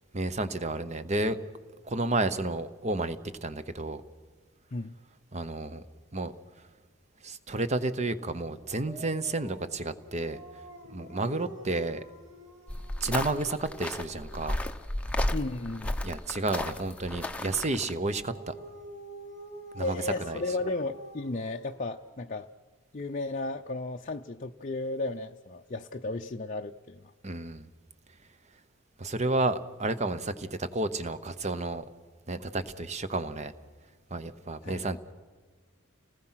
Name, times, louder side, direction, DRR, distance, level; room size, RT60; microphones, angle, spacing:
voice 1, 0.1-1.4 1.8-4.0 5.3-5.8 6.1-6.3 7.2-10.4 10.9-12.0 13.0-14.6 16.0-18.5 19.7-20.4 27.2-27.7 29.0-31.8 32.3-33.5 34.1-35.0, right 2 dB, 35° right, 12 dB, 0.9 m, -31 dB
Dog, 8.7-14.5 17.7-22.2, right 2 dB, 50° right, 5.2 m, -48 dB
sound 1, 12.7-17.9, left 1 dB, 5° left, 0.8 m, -33 dB
voice 2, 15.3-16.0 19.8-22.5 22.9-27.0 34.6-34.9, left 2 dB, 40° left, 3 dB, 0.6 m, -34 dB
30.0 x 19.5 x 5.8 m, 1.5 s
head